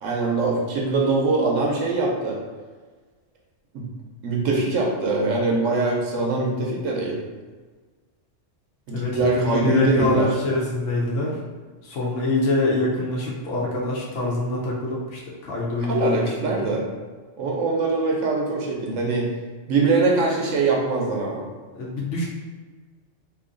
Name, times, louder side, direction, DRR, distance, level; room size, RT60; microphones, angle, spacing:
voice 1, 0.0-2.4 3.7-3.8 4.2-7.2 8.9-10.3 15.9-16.8 17.4-19.3 19.7-21.4, right 3 dB, 85° right, -1 dB, 1.1 m, -22 dB
voice 2, 8.9-11.3 11.8-16.5 21.7-22.3, left 2 dB, 75° left, -4 dB, 1.0 m, -25 dB
2.9 x 2.7 x 3.8 m, 1.4 s
omnidirectional pair, 1.3 m